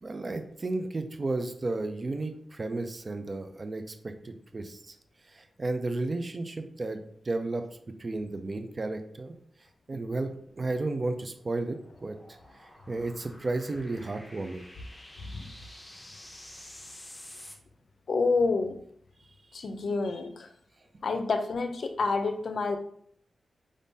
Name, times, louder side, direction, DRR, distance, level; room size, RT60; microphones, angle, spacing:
voice 1, 0.0-4.9 5.3-7.6 8.0-9.3 9.9-12.2 12.6-14.7, right 2 dB, 30° right, 7 dB, 0.4 m, -33 dB
sound 1, 10.2-17.6, left 1 dB, 15° left, 0.8 m, -50 dB
voice 2, 15.2-15.5 18.1-18.7 19.5-20.5 21.0-22.8, left 4 dB, 55° left, 7 dB, 0.5 m, -28 dB
4.9 x 3.6 x 2.7 m, 0.63 s
wide cardioid pair, 160°, 0 cm